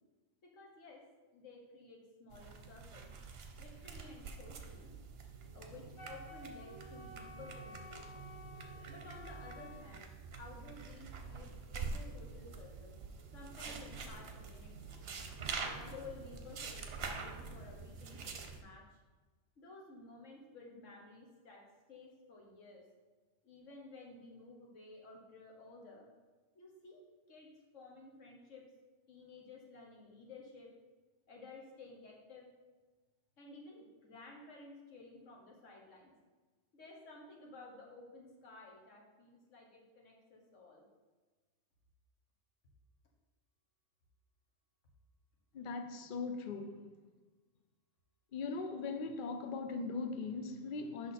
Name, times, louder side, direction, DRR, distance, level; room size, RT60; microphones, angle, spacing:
voice 1, 0.4-1.0 1.3-3.1 3.6-4.9 5.5-8.3 8.9-13.0 13.3-14.9 15.5-19.0 19.6-22.9 23.4-26.1 26.6-27.0 27.3-28.7 29.1-30.7 31.3-32.5 33.4-36.1 36.7-40.8, left 3 dB, 70° left, 1.6 m, -54 dB
sound 1, 2.3-18.6, right 4 dB, 55° right, 0.9 m, -46 dB
Wind instrument woodwind instrument, 6.0-9.9, left 1 dB, 25° left, 1.0 m, -53 dB
voice 2, 45.5-46.9 48.3-51.1, left 4 dB, 50° left, 0.7 m, -40 dB
6.0 x 5.7 x 4.2 m
omnidirectional pair, 1.4 m